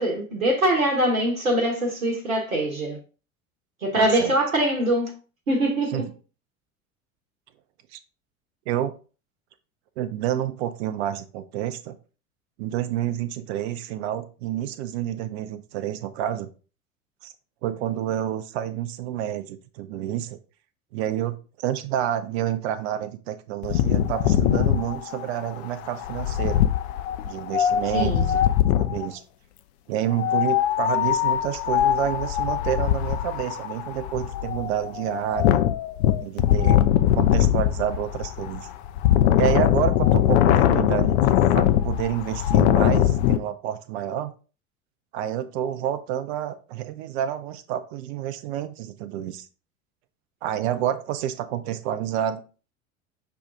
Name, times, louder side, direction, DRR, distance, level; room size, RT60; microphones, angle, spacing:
voice 1, 0.0-3.0 3.8-5.1 5.5-6.0 27.9-28.3, right 1 dB, 80° right, 0.9 m, -23 dB
voice 2, 3.9-4.3 5.9-6.1 7.9-8.0 8.7-8.9 10.0-12.0 12.6-16.5 17.2-17.3 17.6-20.4 20.9-26.6 27.2-28.4 28.9-29.2 29.9-35.6 36.2-36.8 37.1-38.7 39.4-44.3 45.1-49.5 50.4-52.4, right 11 dB, 50° right, 0.6 m, -29 dB
Wind, 23.6-29.1 30.1-43.4, left 11 dB, 55° left, 0.5 m, -21 dB
5.8 x 2.4 x 3.7 m
figure-of-eight pair, 75°, 41 cm